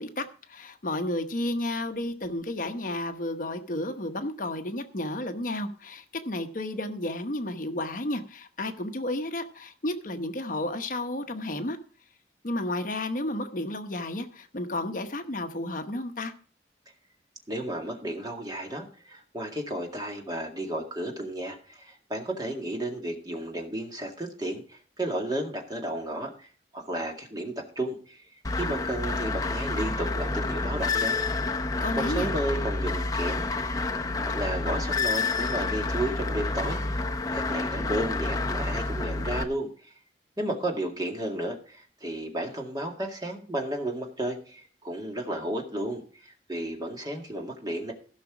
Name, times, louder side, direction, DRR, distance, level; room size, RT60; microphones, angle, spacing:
voice 1, 0.0-11.8 12.4-16.3 31.8-32.3, left 1 dB, 50° left, 1.0 m, -32 dB
voice 2, 17.5-28.2 28.5-31.2 32.0-33.8 34.2-39.9 40.4-47.9, right 1 dB, 20° right, 2.1 m, -33 dB
sound 1, 28.4-39.4, left 3 dB, 20° left, 0.7 m, -29 dB
16.0 x 6.1 x 4.8 m
head